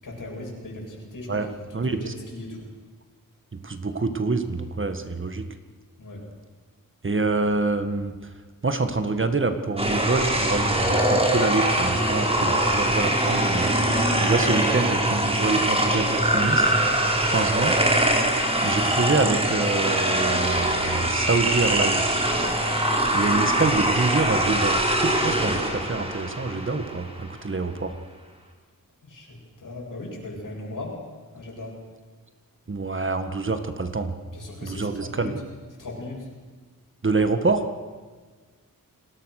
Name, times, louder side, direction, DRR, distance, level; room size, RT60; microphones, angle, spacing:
voice 1, 0.0-2.7 6.0-6.2 29.0-31.0 31.3-31.8 34.3-35.3 35.8-36.3, left 2 dB, 70° left, -2 dB, 8.0 m, -38 dB
voice 2, 1.7-2.1 3.6-5.5 7.0-8.1 8.6-13.7 14.2-16.8 17.2-17.7 18.6-22.2 23.1-27.9 32.7-34.1 34.6-35.4 37.0-37.6, right 3 dB, 35° right, 8 dB, 1.7 m, -26 dB
sound 1, 9.8-27.1, right 1 dB, 15° right, 4.3 m, -23 dB
29.5 x 20.0 x 6.5 m, 1.4 s
wide cardioid pair, 120°, 33 cm